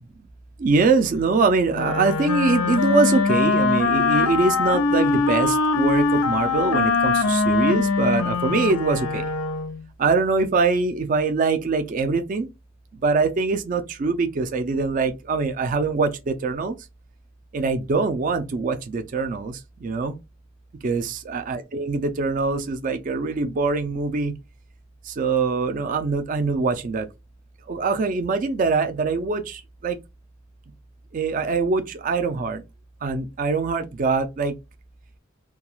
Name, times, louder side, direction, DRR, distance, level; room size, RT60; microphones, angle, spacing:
voice 1, 0.6-9.3 10.0-12.5 12.9-16.8 17.5-20.2 20.8-24.3 25.0-27.1 27.7-30.0 31.1-32.6 33.0-34.6, right 4 dB, 40° right, 0.3 m, -23 dB
Wind instrument woodwind instrument, 1.7-9.8, left 4 dB, 85° left, 0.5 m, -22 dB
2.3 x 2.2 x 3.0 m
head